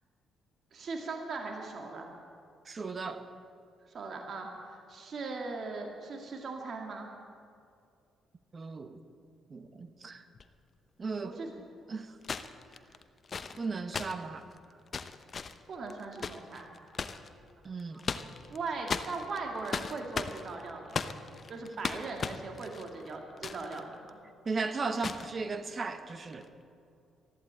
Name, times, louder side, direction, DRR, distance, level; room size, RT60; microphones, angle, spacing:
voice 1, 0.7-2.1 3.9-7.1 11.2-11.5 15.7-16.7 18.3-21.2 21.5-24.2, right 3 dB, 55° right, 1 dB, 2.2 m, -39 dB
voice 2, 2.7-3.2 8.5-9.0 9.5-10.2 11.0-11.3 11.9-12.2 13.6-14.5 17.6-18.0 24.4-26.5, right 4 dB, 35° right, 9 dB, 1.1 m, -36 dB
sound 1, 10.3-10.4 12.2-17.3 17.8-18.6 18.9-23.8 24.1-24.2 25.0-25.3 26.2-26.4, left 5 dB, 40° left, 0.8 m, -37 dB
13.5 x 11.5 x 8.9 m, 2.4 s
cardioid pair, 90°, 0 cm